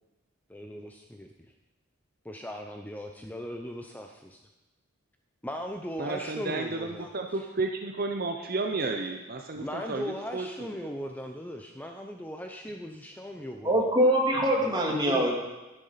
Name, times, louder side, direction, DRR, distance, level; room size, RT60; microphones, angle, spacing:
voice 1, 0.5-1.3 2.2-4.4 5.4-7.1 9.6-13.7 14.6-15.3, equal, 10° left, 3 dB, 0.7 m, -38 dB
voice 2, 6.0-10.9, right 3 dB, 45° right, 4 dB, 0.8 m, -32 dB
voice 3, 13.6-15.4, right 1 dB, 20° right, -1 dB, 2.4 m, -23 dB
12.5 x 10.5 x 5.7 m, 1.1 s
head